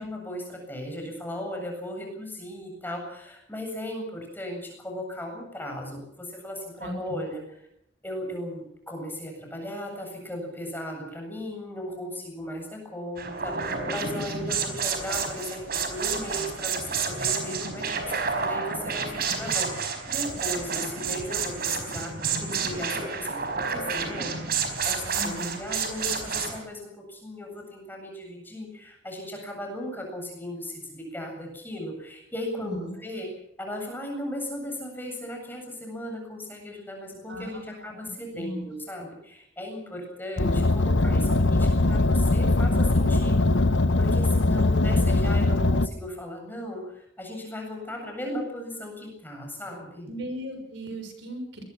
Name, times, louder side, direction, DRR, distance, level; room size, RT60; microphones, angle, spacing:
voice 1, 0.0-7.4 8.0-33.3 33.6-43.7 44.0-50.1, left 1 dB, 10° left, 2 dB, 8.0 m, -37 dB
voice 2, 6.8-7.2 25.2-25.5 32.6-32.9 37.3-37.9 38.3-38.7 50.1-51.6, equal, 70° right, 6 dB, 6.4 m, -36 dB
sound 1, 13.2-26.6, right 5 dB, 55° right, 4.9 m, -30 dB
Car, 40.4-45.9, left 2 dB, 75° left, 1.0 m, -21 dB
24.0 x 21.5 x 6.0 m, 0.74 s
head